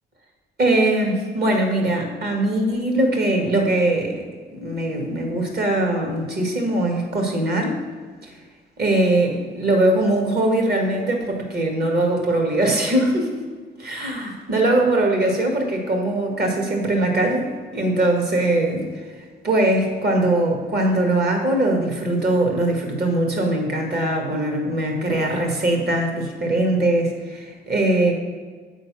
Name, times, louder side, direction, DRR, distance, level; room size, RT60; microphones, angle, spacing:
voice 1, 0.6-4.3 4.5-7.8 8.2-8.3 8.8-13.3 13.8-18.8 19.2-28.1, right 1 dB, 55° right, 2 dB, 1.9 m, -21 dB
8.3 x 3.9 x 6.1 m, 1.5 s
cardioid pair, 90°, 20 cm